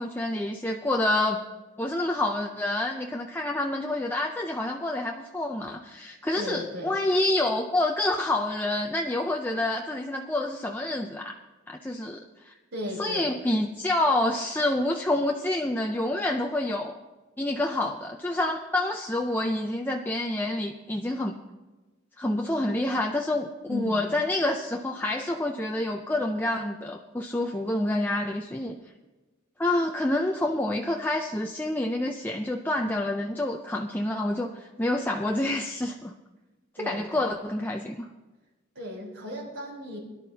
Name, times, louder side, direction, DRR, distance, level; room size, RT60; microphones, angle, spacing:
voice 1, 0.0-1.4 1.8-11.3 11.7-12.5 13.0-17.0 17.4-21.4 22.2-28.8 29.6-36.1 36.8-38.1, left 1 dB, 10° left, 2 dB, 0.5 m, -28 dB
voice 2, 6.4-7.0 12.7-13.3 23.7-24.1 36.8-37.3 38.7-40.0, left 1 dB, 85° right, -5 dB, 3.9 m, -35 dB
21.5 x 11.5 x 2.8 m, 1.2 s
head